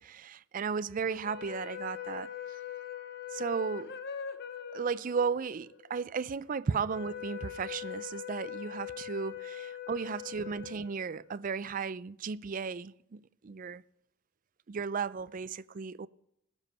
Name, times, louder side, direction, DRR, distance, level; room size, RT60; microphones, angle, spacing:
voice 1, 0.0-2.3 3.3-3.9 4.7-13.8 14.7-16.1, right 5 dB, 40° right, 0.4 m, -35 dB
sound 1, 1.1-11.5, left 9 dB, 55° left, 1.0 m, -42 dB
19.0 x 7.3 x 4.2 m
head